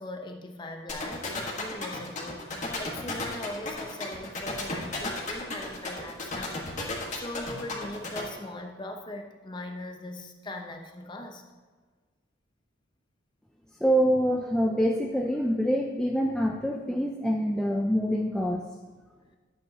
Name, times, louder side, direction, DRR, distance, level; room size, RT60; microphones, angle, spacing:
voice 1, 0.0-11.4, left 1 dB, 25° left, 3 dB, 0.8 m, -40 dB
sound 1, 0.9-8.2, left 3 dB, 40° left, 1.5 m, -33 dB
voice 2, 13.8-18.7, equal, 5° left, 0 dB, 0.4 m, -25 dB
12.5 x 8.3 x 2.9 m, 1.4 s
head